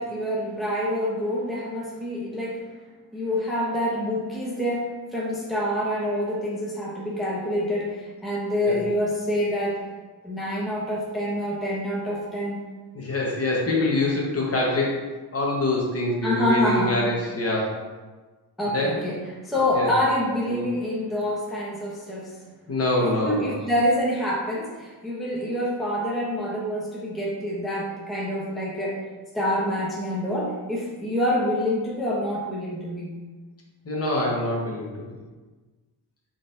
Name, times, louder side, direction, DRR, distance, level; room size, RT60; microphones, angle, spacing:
voice 1, 0.0-2.6 3.1-9.8 10.2-12.6 16.2-16.9 18.6-22.4 23.0-29.1 29.3-33.1, left 1 dB, ahead, -5 dB, 0.7 m, -26 dB
voice 2, 12.9-17.8 18.7-19.0 19.7-19.9 20.5-20.6 22.7-23.5 33.8-35.2, left 2 dB, 35° left, -3 dB, 1.0 m, -25 dB
4.0 x 3.8 x 2.5 m, 1.3 s
cardioid pair, 110°, 41 cm